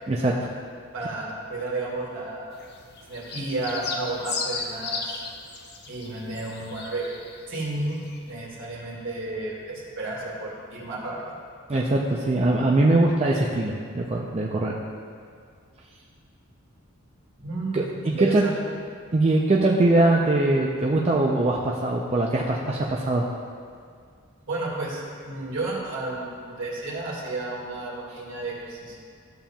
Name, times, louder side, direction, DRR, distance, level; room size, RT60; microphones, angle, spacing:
voice 1, 0.1-0.5 11.7-14.8 17.7-18.4 19.1-23.3, right 2 dB, 30° right, -2 dB, 0.4 m, -22 dB
voice 2, 0.9-2.6 3.1-5.2 5.9-8.0 8.3-11.4 17.4-18.6 24.5-29.0, right 2 dB, 60° right, -4 dB, 2.1 m, -32 dB
sound 1, 2.5-7.7 7.9-8.2, left 4 dB, 50° left, 0.7 m, -35 dB
12.5 x 7.2 x 2.3 m, 2.2 s
head